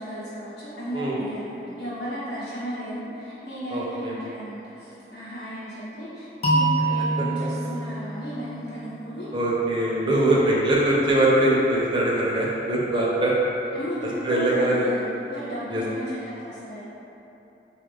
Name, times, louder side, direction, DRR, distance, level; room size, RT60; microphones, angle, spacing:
voice 1, 0.0-9.3 10.1-10.5 13.7-16.8, equal, 85° left, -13 dB, 0.8 m, -34 dB
voice 2, 3.7-4.2 9.3-13.3 14.2-14.9 15.7-15.8, right 1 dB, 25° right, -5 dB, 0.5 m, -22 dB
sound 1, 6.4-9.3, right 2 dB, 35° left, 0.5 m, -26 dB
4.2 x 2.4 x 3.3 m, 3.0 s
head